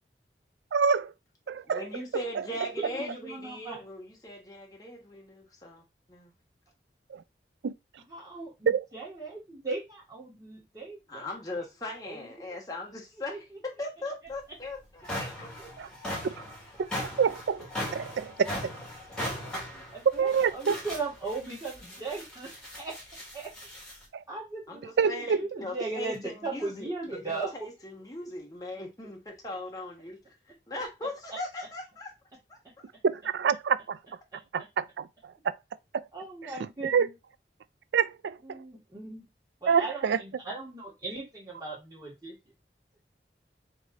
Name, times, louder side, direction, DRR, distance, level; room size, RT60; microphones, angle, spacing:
voice 1, 0.7-1.1 1.5-1.8 2.1-2.4 7.1-7.2 7.6-7.7 8.7-8.8 15.8-15.9 17.2-17.7 17.9-18.7 20.1-20.7 24.1-24.2 25.0-25.5 33.0-34.0 34.5-35.1 36.4-36.5 36.8-37.1 37.9-38.6 39.7-40.2, right 6 dB, 85° right, 0.4 m, -26 dB
voice 2, 1.7-6.3 11.1-15.7 24.7-30.2 30.7-32.1 32.5-32.6, left 1 dB, 20° left, 1.2 m, -39 dB
voice 3, 2.8-3.9 8.1-11.2 12.0-12.3 13.3-13.4 19.3-19.4 19.7-22.5 22.8-22.9 23.3-23.5 24.3-24.9 25.3-27.5 34.3-34.4 36.1-37.1 38.4-39.3 39.6-42.4, right 3 dB, 20° right, 2.0 m, -38 dB
sound 1, 14.3-14.4 14.8-24.0, left 1 dB, 5° left, 1.5 m, -38 dB
3.7 x 3.3 x 4.1 m
head